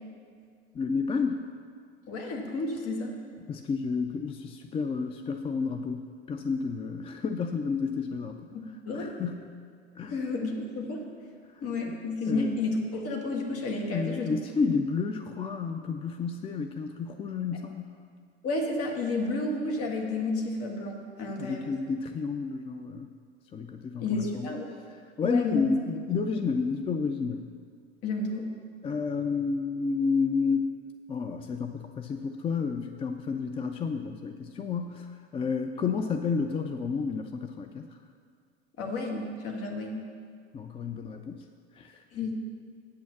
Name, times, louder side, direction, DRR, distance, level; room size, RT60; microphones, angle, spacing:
voice 1, 0.7-1.5 3.5-8.4 8.9-9.6 10.0-10.2 11.9-12.5 13.9-18.0 21.4-23.1 23.5-24.5 24.9-27.5 28.8-30.8 31.1-38.0 40.5-41.4 41.7-42.0, left 5 dB, 20° left, 7 dB, 0.4 m, -31 dB
voice 2, 2.1-3.1 8.5-9.2 10.1-11.0 11.6-14.3 18.4-21.6 24.0-24.7 25.2-25.7 28.0-28.5 38.8-40.0 42.1-42.3, left 2 dB, 45° left, 1 dB, 1.8 m, -31 dB
8.3 x 6.2 x 7.0 m, 2.1 s
hypercardioid pair, 80°, 33 cm